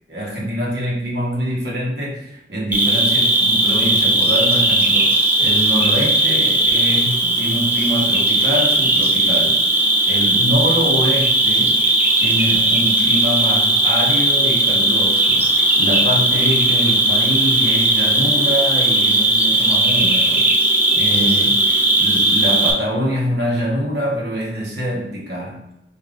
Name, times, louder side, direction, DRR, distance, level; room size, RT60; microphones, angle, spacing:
voice 1, 0.1-9.6 10.0-11.8 12.2-20.5 20.9-21.7 22.0-25.6, equal, 60° right, -4 dB, 1.1 m, -24 dB
Cricket, 2.7-22.7, right 1 dB, 10° right, 0.4 m, -17 dB
5.1 x 2.6 x 2.4 m, 0.86 s
head